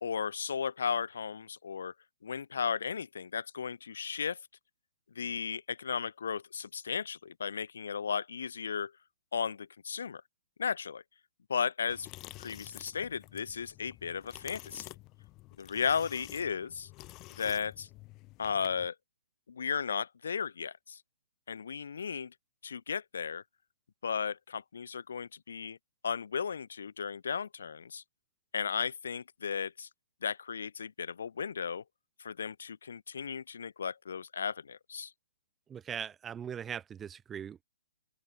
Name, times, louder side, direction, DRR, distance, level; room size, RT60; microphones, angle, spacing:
voice 1, 0.0-1.9 2.2-4.4 5.2-8.9 9.3-10.2 10.6-11.0 11.5-12.1 12.4-14.9 15.6-16.9 17.4-17.9 18.4-18.9 19.5-21.0 21.5-22.3 22.6-23.4 24.0-25.8 26.0-28.0 28.5-29.9 30.2-31.8 32.2-35.1, left 6 dB, 70° left, 0.4 m, -35 dB
sound 1, 11.9-18.9, left 21 dB, 15° left, 4.4 m, -50 dB
voice 2, 35.7-37.6, right 8 dB, 10° right, 0.4 m, -40 dB
open air
hypercardioid pair, 175°, 0 cm